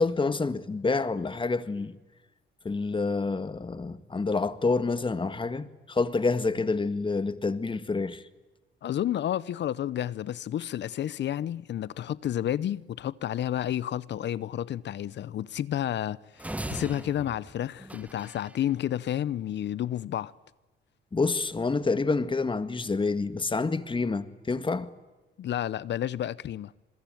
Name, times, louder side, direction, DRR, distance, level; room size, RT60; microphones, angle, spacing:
voice 1, 0.0-1.9 2.6-8.2 21.1-24.9, left 3 dB, 25° left, 1.8 m, -28 dB
voice 2, 8.8-20.3 25.4-26.7, left 11 dB, 60° left, 0.8 m, -31 dB
sound 1, 16.4-18.6, right 1 dB, 5° right, 1.6 m, -39 dB
27.5 x 21.5 x 9.2 m
cardioid pair, 90°, 20 cm